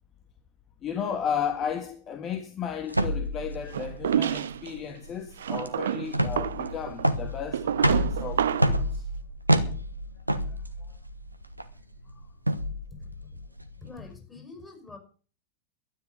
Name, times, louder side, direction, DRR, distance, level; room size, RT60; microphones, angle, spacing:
voice 1, 0.8-9.1 10.5-10.6, left 8 dB, 30° left, 1.8 m, -34 dB
sound 1, 2.9-14.1, right 1 dB, 90° right, 1.2 m, -29 dB
sound 2, 3.7-4.7 5.4-8.8, right 9 dB, 65° right, 0.7 m, -29 dB
voice 2, 13.0-13.4 13.8-15.0, left 4 dB, 15° left, 5.4 m, -46 dB
12.5 x 10.0 x 6.8 m
figure-of-eight pair, 90°, 0 cm